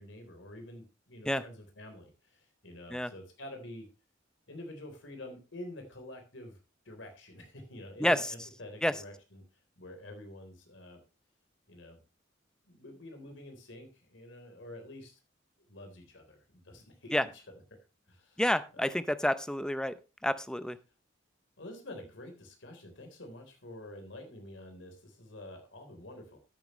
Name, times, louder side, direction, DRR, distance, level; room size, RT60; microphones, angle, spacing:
voice 1, 0.0-3.9 4.5-6.6 6.9-9.4 9.8-11.0 11.7-12.0 12.7-15.1 15.7-17.8 18.1-18.4 18.7-19.0 21.6-26.4, left 1 dB, 70° left, 5 dB, 3.7 m, -48 dB
voice 2, 18.4-19.9 20.2-20.8, left 1 dB, 5° left, 14 dB, 0.6 m, -28 dB
13.0 x 9.1 x 3.1 m, 0.29 s
head